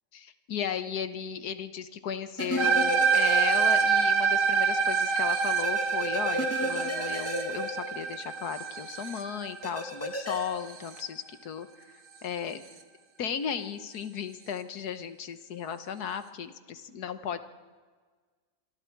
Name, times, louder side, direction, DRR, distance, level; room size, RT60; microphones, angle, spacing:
voice 1, 0.1-11.7 12.2-12.6 13.2-17.4, left 7 dB, 65° left, 10 dB, 1.6 m, -35 dB
sound 1, 2.4-4.1 4.4-4.5 5.6-8.4 9.6-10.4, equal, 10° left, 2.3 m, -34 dB
sound 2, 2.6-11.0, right 6 dB, 75° right, 2.1 m, -26 dB
25.5 x 25.0 x 4.7 m, 1.5 s
omnidirectional pair, 1.8 m